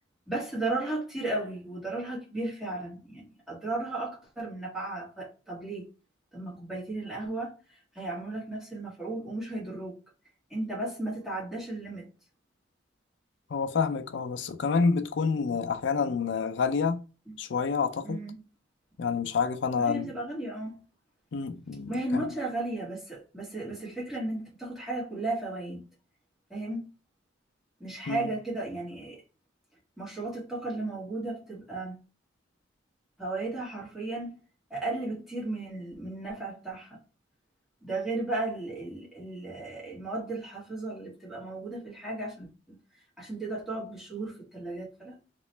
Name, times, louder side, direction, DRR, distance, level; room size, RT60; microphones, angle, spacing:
voice 1, 0.3-5.9 6.3-10.0 10.5-12.1 17.3-17.4 18.0-18.4 19.8-20.8 21.9-25.8 26.5-26.9 27.8-29.2 30.0-32.0 33.2-34.3 34.7-37.0 37.8-42.8 43.2-45.2, right 2 dB, ahead, 1.6 m, -35 dB
voice 2, 13.5-17.0 17.4-18.2 19.0-20.1 21.3-22.2 28.1-28.3, left 5 dB, 60° left, 0.4 m, -28 dB
3.0 x 3.0 x 3.2 m
head